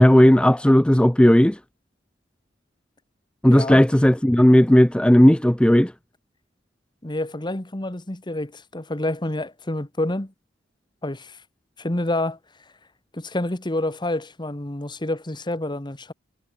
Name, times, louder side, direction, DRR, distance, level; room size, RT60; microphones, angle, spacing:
voice 1, 0.0-1.6 3.4-5.9, equal, 5° left, 0.5 m, -15 dB
voice 2, 3.5-3.8 7.0-10.3 11.0-11.4 11.8-12.4 13.1-16.1, left 1 dB, 25° left, 1.5 m, -28 dB
head